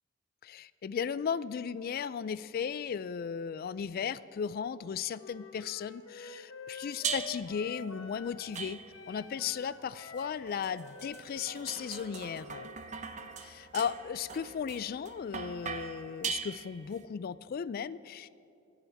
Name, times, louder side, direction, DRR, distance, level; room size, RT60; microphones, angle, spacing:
voice 1, 0.4-12.7 13.4-18.3, left 7 dB, 45° left, 17 dB, 0.3 m, -36 dB
Wind instrument woodwind instrument, 5.1-8.7 8.9-12.8, left 3 dB, 80° left, 1.1 m, -48 dB
sound 1, 7.0-7.6 8.5-9.2 10.2-17.0, right 6 dB, 35° right, 0.6 m, -40 dB
23.5 x 8.5 x 3.5 m, 2.6 s
head